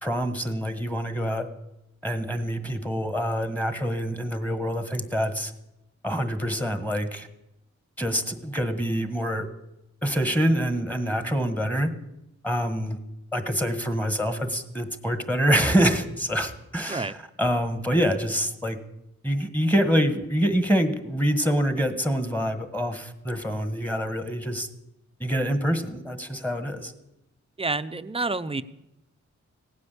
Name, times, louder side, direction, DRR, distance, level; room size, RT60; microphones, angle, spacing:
voice 1, 0.0-1.5 2.0-5.5 6.0-7.3 8.0-9.5 10.0-11.9 12.4-13.0 13.3-18.8 19.2-24.7 25.2-26.9, equal, 5° left, 9 dB, 1.5 m, -26 dB
voice 2, 27.6-28.6, right 3 dB, 20° right, 13 dB, 0.6 m, -28 dB
17.0 x 9.8 x 8.3 m, 0.90 s
wide cardioid pair, 105°, 29 cm